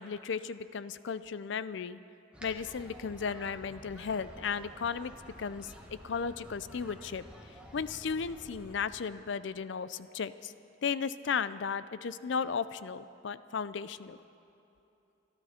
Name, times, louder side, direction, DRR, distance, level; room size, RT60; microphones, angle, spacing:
voice 1, 0.0-2.0 2.4-5.1 5.4-7.3 7.7-10.5 10.8-14.2, left 6 dB, 65° left, 15 dB, 0.4 m, -35 dB
sound 1, 2.3-8.8, equal, 5° right, 1.6 m, -51 dB
25.0 x 12.5 x 4.3 m, 2.8 s
head